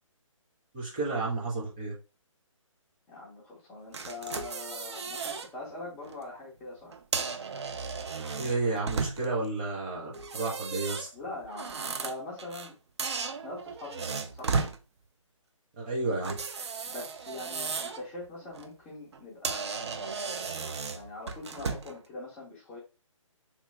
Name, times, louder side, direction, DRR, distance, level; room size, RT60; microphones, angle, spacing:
voice 1, 0.7-1.9 8.4-11.1 15.8-16.4, right 3 dB, 15° right, -3 dB, 0.8 m, -31 dB
voice 2, 3.1-6.9 11.1-12.8 13.4-14.6 16.9-22.8, left 2 dB, 5° left, -8 dB, 0.4 m, -43 dB
sound 1, 3.9-5.5 5.9-6.1 6.9-9.5 10.1-12.7 13.0-14.8 16.2-18.0 18.4-18.7 19.1-19.2 19.4-22.0, right 5 dB, 55° right, 0.5 m, -35 dB
3.0 x 2.4 x 3.2 m, 0.31 s
figure-of-eight pair, 145°, 17 cm